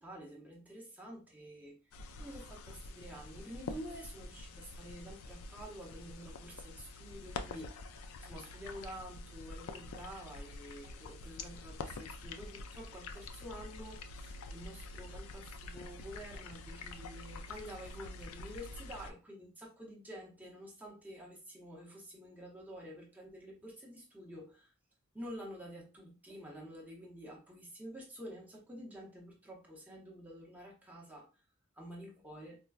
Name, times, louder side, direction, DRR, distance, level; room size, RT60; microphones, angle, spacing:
voice 1, 0.0-24.7 25.1-31.3 31.8-32.6, equal, 10° right, -3 dB, 0.7 m, -49 dB
sound 1, 1.9-19.1, left 3 dB, 70° left, 0.4 m, -47 dB
4.3 x 2.2 x 2.3 m, 0.32 s
head